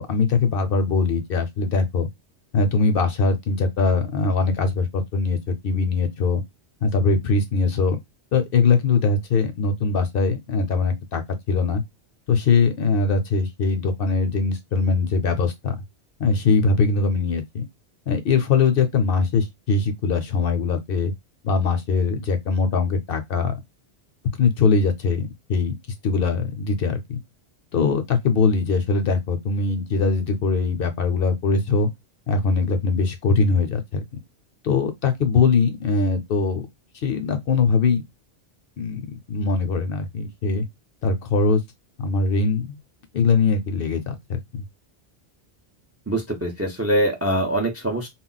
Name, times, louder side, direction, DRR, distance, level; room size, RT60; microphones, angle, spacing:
voice 1, 0.0-2.1 2.5-6.4 6.8-8.0 8.3-11.8 12.3-15.8 16.2-17.6 18.1-21.1 21.4-23.5 24.4-25.7 26.0-27.2 27.7-31.9 32.3-34.0 34.6-36.7 37.0-38.0 38.8-40.7 41.0-41.6 42.0-42.8 43.1-44.6, left 4 dB, 65° left, 0.7 m, -21 dB
voice 2, 46.1-48.1, right 1 dB, 20° right, 0.4 m, -23 dB
2.3 x 2.0 x 3.8 m
omnidirectional pair, 1.1 m